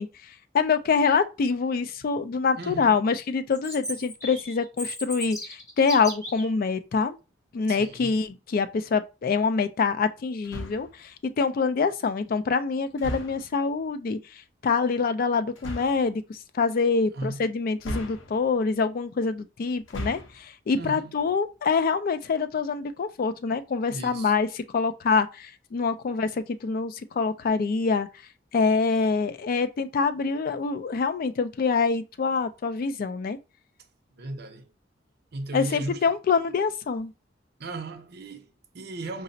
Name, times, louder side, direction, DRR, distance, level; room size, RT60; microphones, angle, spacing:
voice 1, 0.0-7.2 7.5-24.5 24.7-28.1 28.5-33.4 35.5-37.1, left 5 dB, 50° left, 0.3 m, -25 dB
voice 2, 2.5-3.0 7.7-8.2 17.1-17.5 20.7-21.2 23.9-24.3 34.2-34.7 35.3-36.1 37.6-39.2, right 2 dB, 55° right, 0.6 m, -36 dB
Chirp tweet, 3.5-6.5, equal, 20° left, 1.0 m, -36 dB
sound 1, 10.4-11.0 13.0-13.6 15.5-16.1 17.8-18.6 19.8-20.5, equal, 85° left, 0.6 m, -36 dB
4.9 x 2.0 x 2.6 m
head